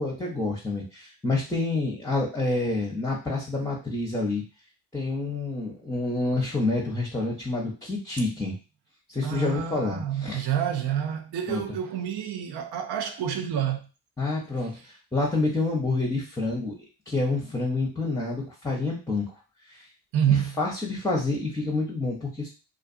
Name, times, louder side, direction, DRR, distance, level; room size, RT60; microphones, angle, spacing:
voice 1, 0.0-4.4 4.9-8.6 9.1-10.5 11.5-11.6 14.2-16.7 17.1-19.3 19.7-19.9 20.6-22.5, left 2 dB, 10° left, 0.8 m, -28 dB
voice 2, 9.2-13.9 20.1-20.5, right 9 dB, 60° right, 0.7 m, -28 dB
2.4 x 2.3 x 2.6 m
hypercardioid pair, 45°, 45 cm